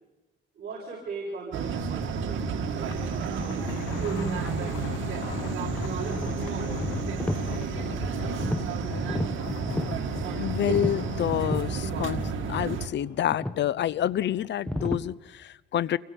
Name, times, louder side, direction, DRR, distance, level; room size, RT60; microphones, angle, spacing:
voice 1, 0.5-5.5 6.0-8.4 8.7-9.3, right 4 dB, 50° right, -3 dB, 7.3 m, -41 dB
sound 1, 1.5-12.9, right 5 dB, 75° right, 2.2 m, -31 dB
Thunder, 2.7-14.5, left 11 dB, 90° left, 1.0 m, -41 dB
sound 2, 4.4-4.5 4.9-6.2 6.7-7.5 7.8-8.7 9.0-10.0 10.6-11.7 12.2-12.4 12.7-12.8 13.3-13.7 14.6-15.0, equal, 5° left, 1.3 m, -32 dB
voice 2, 10.4-12.2 12.5-16.0, left 11 dB, 65° left, 20 dB, 0.8 m, -28 dB
29.0 x 23.0 x 5.4 m, 1.0 s
cardioid pair, 90°, 20 cm